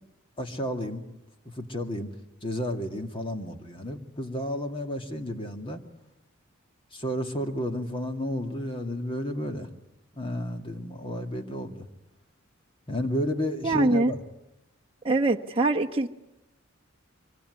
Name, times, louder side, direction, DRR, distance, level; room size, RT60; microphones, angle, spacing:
voice 1, 0.4-1.0 1.4-2.1 2.4-5.9 6.9-9.7 10.1-11.9 12.9-14.2, equal, 25° left, 5 dB, 2.3 m, -32 dB
voice 2, 13.6-14.1 15.0-16.1, right 2 dB, 25° right, 0 dB, 1.1 m, -23 dB
24.5 x 24.5 x 9.7 m, 0.93 s
head